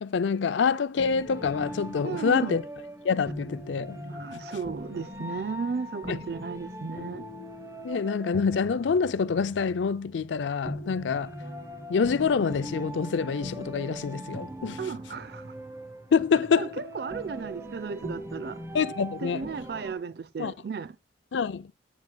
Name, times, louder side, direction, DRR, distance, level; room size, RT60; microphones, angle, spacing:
voice 1, 0.0-2.6 3.0-4.0 6.1-6.2 7.8-11.4 11.9-14.8 16.1-16.7 18.7-19.5 20.4-20.5 21.3-21.7, left 5 dB, 80° left, 0.4 m, -26 dB
sound 1, 1.0-19.9, equal, 15° right, 0.9 m, -40 dB
voice 2, 2.0-2.6 4.0-7.2 14.8-15.5 16.6-18.6 19.2-21.0, right 5 dB, 55° right, 0.4 m, -35 dB
sound 2, 11.4-15.1, right 5 dB, 35° right, 2.6 m, -55 dB
9.2 x 7.2 x 2.2 m
head